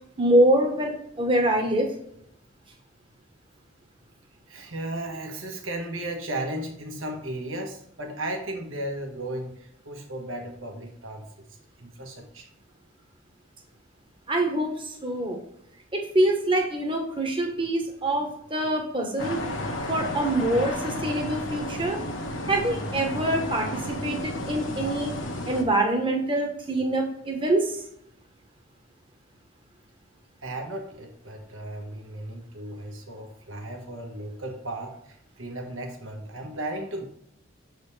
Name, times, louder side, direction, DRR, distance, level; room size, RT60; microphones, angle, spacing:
voice 1, 0.2-1.9 14.3-15.4 15.9-19.4 19.9-22.0 22.5-25.1 25.5-27.8, right 1 dB, 25° right, 2 dB, 1.1 m, -25 dB
voice 2, 4.5-11.4 11.8-12.5 30.4-37.1, right 1 dB, 75° right, 2 dB, 1.4 m, -35 dB
sound 1, 19.2-25.6, left 1 dB, 75° left, 1.2 m, -32 dB
7.1 x 4.1 x 3.3 m, 0.73 s
head